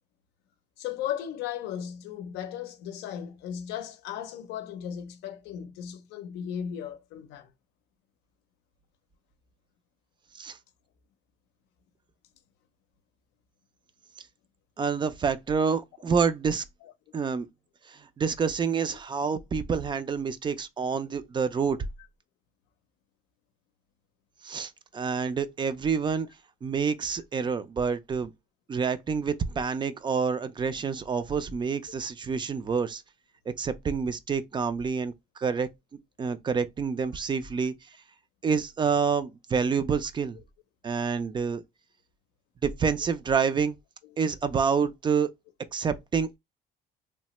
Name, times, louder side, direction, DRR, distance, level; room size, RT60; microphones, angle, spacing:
voice 1, 0.8-7.5 16.8-16.9 19.3-19.4, left 9 dB, 85° left, 0.5 m, -36 dB
voice 2, 14.8-16.6 17.1-17.5 17.9-21.8 24.4-26.3 26.6-28.3 28.7-33.0 33.6-35.7 36.2-37.7 38.4-40.4 40.8-41.6 42.6-43.7 44.2-45.3 45.7-46.4, right 6 dB, 30° right, 0.4 m, -28 dB
3.2 x 2.1 x 2.9 m
cardioid pair, 110°, 17 cm